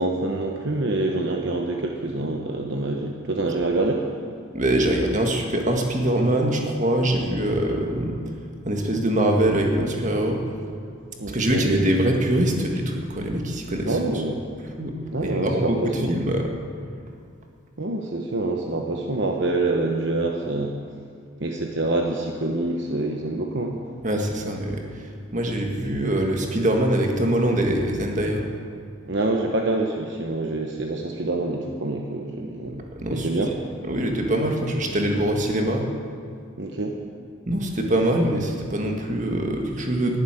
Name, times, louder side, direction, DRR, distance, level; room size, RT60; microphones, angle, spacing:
voice 1, 0.0-4.1 11.2-11.7 13.8-14.4 15.1-16.2 17.8-20.7 21.4-23.9 29.0-32.8 33.1-33.5 36.6-37.1, right 2 dB, 60° right, 2 dB, 1.0 m, -26 dB
voice 2, 4.5-8.2 8.6-10.4 11.3-14.0 14.8-14.9 15.2-16.5 24.0-28.5 32.9-33.3 33.9-35.9 37.5-40.2, right 1 dB, 35° right, 2 dB, 1.8 m, -23 dB
11.5 x 11.0 x 9.1 m, 2.2 s
head